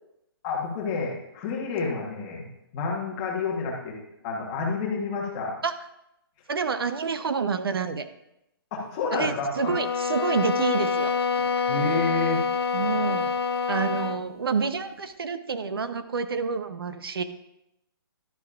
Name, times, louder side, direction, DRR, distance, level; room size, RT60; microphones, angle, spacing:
voice 1, 0.4-2.5 2.7-3.9 4.2-5.5 8.7-9.7 11.7-12.4, left 4 dB, 15° left, -2 dB, 1.2 m, -29 dB
voice 2, 6.5-8.1 9.1-11.1 12.7-13.3 13.7-17.2, right 5 dB, 70° right, 10 dB, 0.8 m, -28 dB
sound 1, 9.5-14.3, left 5 dB, 90° left, 1.0 m, -26 dB
11.5 x 10.0 x 2.5 m, 0.84 s
hypercardioid pair, 180°, 13 cm